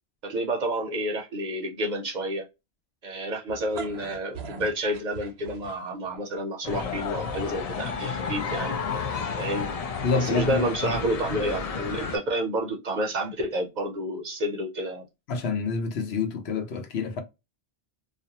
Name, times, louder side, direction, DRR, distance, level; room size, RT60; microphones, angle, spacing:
voice 1, 0.2-2.5 3.0-8.8 9.4-9.7 10.1-15.1, right 1 dB, 55° right, 0.6 m, -29 dB
sound 1, 3.5-6.1, right 4 dB, 85° right, 0.9 m, -40 dB
sound 2, 6.6-12.2, left 5 dB, 50° left, 0.5 m, -31 dB
voice 2, 10.0-11.0 15.3-17.2, left 4 dB, 80° left, 0.9 m, -28 dB
2.4 x 2.1 x 2.7 m
omnidirectional pair, 1.1 m